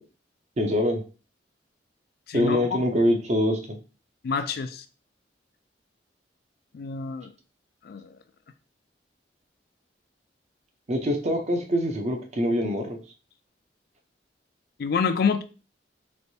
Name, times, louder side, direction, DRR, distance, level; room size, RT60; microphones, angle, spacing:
voice 1, 0.6-1.0 2.3-3.6 10.9-13.0, equal, 40° right, 0.7 m, -24 dB
voice 2, 2.3-2.8 4.2-4.8 6.7-7.3 7.9-8.0 14.8-15.4, left 5 dB, 60° left, 0.4 m, -27 dB
3.2 x 2.6 x 2.7 m
head